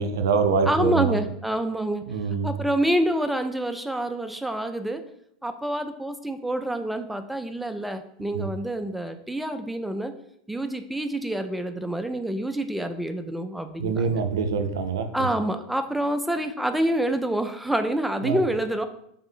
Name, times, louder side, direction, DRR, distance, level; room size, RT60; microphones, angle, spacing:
voice 1, 0.0-1.2 2.1-2.6 8.3-8.5 13.8-15.3 18.2-18.4, right 5 dB, 70° right, 7 dB, 0.4 m, -25 dB
voice 2, 0.7-2.1 2.4-5.0 5.4-10.1 10.5-14.2 15.1-18.9, right 1 dB, 5° right, 8 dB, 0.4 m, -27 dB
3.4 x 2.6 x 4.0 m, 0.73 s
figure-of-eight pair, 85°, 2 cm